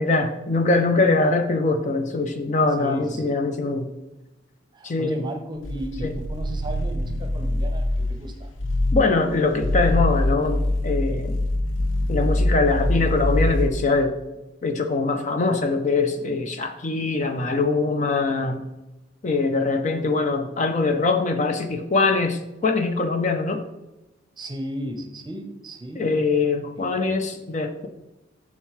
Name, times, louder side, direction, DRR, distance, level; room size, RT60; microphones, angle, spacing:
voice 1, 0.0-3.9 4.8-5.2 6.0-6.1 8.9-11.4 12.1-14.1 14.6-18.6 19.2-23.6 26.0-27.9, left 3 dB, 40° left, 7 dB, 0.5 m, -23 dB
voice 2, 2.8-3.3 4.7-8.5 24.4-26.1 26.7-27.1, right 1 dB, 25° right, 4 dB, 0.8 m, -35 dB
sound 1, 5.6-8.2 8.6-9.1 9.5-13.8, left 1 dB, 90° left, 0.8 m, -24 dB
6.7 x 6.5 x 3.2 m, 0.98 s
head